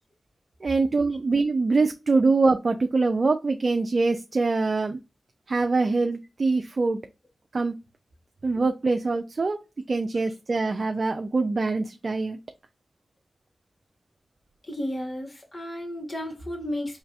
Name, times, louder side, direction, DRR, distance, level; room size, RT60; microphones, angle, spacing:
voice 1, 0.6-5.0 5.5-7.0 7.5-7.7 8.4-9.6 9.9-12.4, right 3 dB, 55° right, 6 dB, 0.4 m, -24 dB
voice 2, 14.6-17.0, left 1 dB, 40° left, 2 dB, 1.7 m, -33 dB
3.9 x 3.1 x 2.5 m, 0.28 s
cardioid pair, 45°, 0 cm